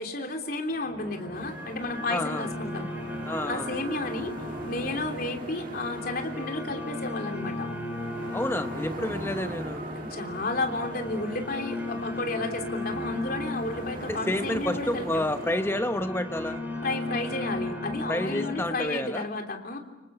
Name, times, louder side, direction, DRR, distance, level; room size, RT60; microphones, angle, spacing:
voice 1, 0.0-2.9 3.5-4.3 4.6-7.7 9.9-15.2 16.8-19.8, left 2 dB, 50° left, 3 dB, 3.4 m, -32 dB
sound 1, 0.7-18.7, left 1 dB, 10° right, 7.2 m, -36 dB
sound 2, 1.3-15.7, right 2 dB, 45° right, 1.8 m, -42 dB
voice 2, 2.1-2.5 3.3-3.7 8.3-9.8 14.0-16.6 18.1-19.3, left 1 dB, 15° left, 8 dB, 1.0 m, -29 dB
29.0 x 26.0 x 7.0 m, 1.1 s
head